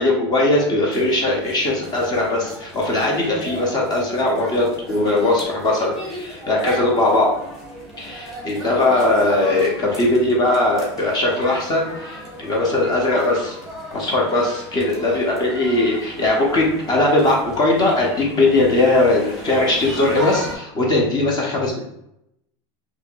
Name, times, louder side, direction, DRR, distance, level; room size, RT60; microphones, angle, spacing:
voice 1, 0.0-7.3 8.0-13.6 13.9-21.8, left 2 dB, 25° left, -1 dB, 0.7 m, -19 dB
sound 1, 0.9-20.6, equal, ahead, 1.0 m, -36 dB
4.1 x 2.8 x 2.3 m, 0.81 s
supercardioid pair, 145°, 15 cm